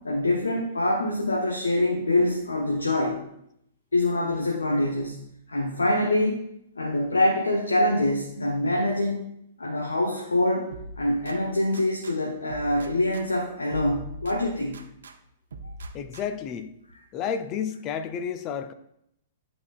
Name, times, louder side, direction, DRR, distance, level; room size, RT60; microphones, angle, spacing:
voice 1, 0.0-3.3 3.9-6.4 6.8-9.2 9.6-10.7 11.0-14.9, left 1 dB, 85° left, 0.9 m, -25 dB
sound 1, 10.7-12.2 12.5-15.2 15.5-16.5, right 1 dB, 70° right, 0.7 m, -42 dB
voice 2, 15.9-16.7 17.1-18.7, left 7 dB, 35° left, 0.6 m, -31 dB
11.0 x 4.3 x 2.4 m
figure-of-eight pair, 110°, 0 cm